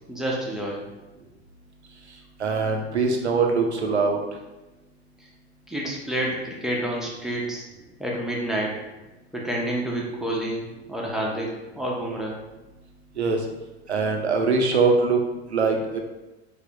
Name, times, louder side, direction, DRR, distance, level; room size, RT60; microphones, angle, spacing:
voice 1, 0.1-0.8 5.7-7.6 8.0-8.8 9.3-10.6 10.9-12.4, right 1 dB, ahead, -3 dB, 0.3 m, -28 dB
voice 2, 2.4-4.2 13.2-13.4 13.9-15.2 15.5-16.0, right 4 dB, 90° right, 2 dB, 0.5 m, -22 dB
3.3 x 2.0 x 2.6 m, 1.1 s
figure-of-eight pair, 80°, 32 cm